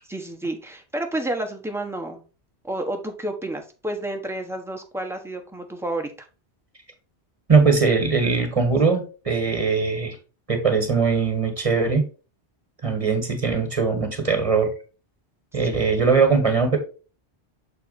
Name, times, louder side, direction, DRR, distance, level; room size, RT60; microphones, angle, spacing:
voice 1, 0.1-2.2 2.6-6.1, right 1 dB, ahead, 3 dB, 1.1 m, -30 dB
voice 2, 7.5-10.2 10.5-12.0 12.8-14.7 15.5-16.8, right 4 dB, 30° right, 4 dB, 1.7 m, -20 dB
7.0 x 4.1 x 4.1 m, 0.34 s
omnidirectional pair, 1.1 m